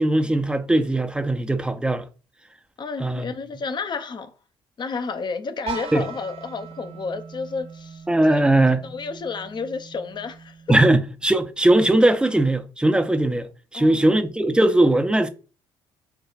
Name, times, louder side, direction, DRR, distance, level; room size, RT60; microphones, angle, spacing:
voice 1, 0.0-2.1 3.0-3.3 5.9-6.1 8.1-8.8 10.7-13.5 13.7-15.3, right 1 dB, 5° right, 0.5 m, -19 dB
voice 2, 2.8-4.3 4.8-8.5 8.8-10.8 13.7-14.0, left 4 dB, 35° left, 0.6 m, -31 dB
sound 1, 5.7-11.5, right 6 dB, 55° right, 0.9 m, -40 dB
4.6 x 2.3 x 2.4 m
hypercardioid pair, 50°, 12 cm